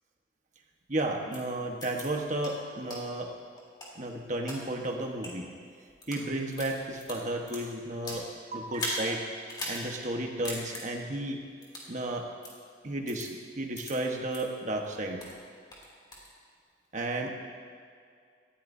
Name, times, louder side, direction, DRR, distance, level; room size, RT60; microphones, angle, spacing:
voice 1, 0.9-3.3 3.9-5.5 6.1-9.2 9.7-11.4 11.9-12.3 12.8-15.2 16.9-17.3, right 1 dB, 40° right, 2 dB, 1.3 m, -33 dB
sound 1, 1.3-1.4 1.8-2.0 2.4-2.5 2.9-3.0 3.6-4.6 5.1-5.3 5.9-6.2 6.5-8.2 8.7-9.0 9.5-9.8 10.1-10.2 10.4-10.8 11.6-11.9 12.4-12.5 13.1-13.3 13.7-13.9 14.3-14.4 14.8-15.4 15.7-16.3, left 1 dB, 25° left, 2.9 m, -38 dB
19.0 x 14.5 x 2.8 m, 2.2 s
head